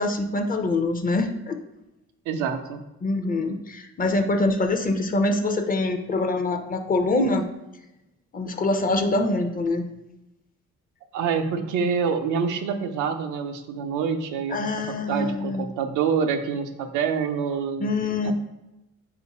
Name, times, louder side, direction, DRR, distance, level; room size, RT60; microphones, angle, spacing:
voice 1, 0.0-1.6 3.0-7.5 8.3-9.9 14.5-15.7 17.8-18.3, left 2 dB, 30° left, 6 dB, 0.4 m, -24 dB
voice 2, 2.3-2.8 11.1-17.9 18.2-18.3, right 6 dB, 90° right, 7 dB, 0.5 m, -26 dB
3.7 x 2.5 x 4.1 m, 0.94 s
cardioid pair, 90°, 30 cm